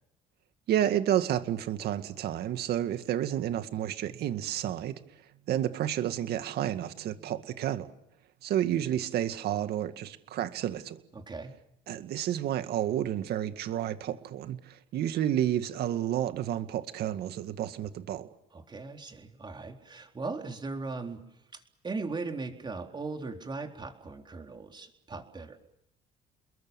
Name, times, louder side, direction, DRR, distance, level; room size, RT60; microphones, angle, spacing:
voice 1, 0.7-5.0 5.5-7.9 8.4-11.0 11.9-18.3, right 11 dB, 70° right, 2.1 m, -30 dB
voice 2, 11.1-11.5 18.5-21.2 21.5-25.6, right 3 dB, 25° right, 4.1 m, -38 dB
30.0 x 22.0 x 7.2 m
cardioid pair, 110°, 17 cm